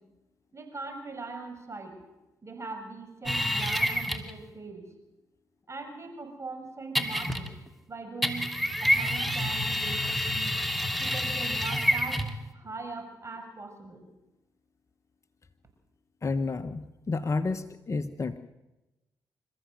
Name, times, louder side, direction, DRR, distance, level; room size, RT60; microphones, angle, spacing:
voice 1, 0.5-2.0 2.4-4.8 5.7-7.6 7.9-10.6 11.0-14.1, right 3 dB, 35° right, 6 dB, 6.1 m, -41 dB
sound 1, 3.3-4.4 7.0-7.7 8.2-12.4, equal, ahead, 2.6 m, -28 dB
voice 2, 16.2-18.4, left 3 dB, 35° left, 9 dB, 1.2 m, -31 dB
27.5 x 14.0 x 7.9 m, 1.0 s
hypercardioid pair, 45°, 9 cm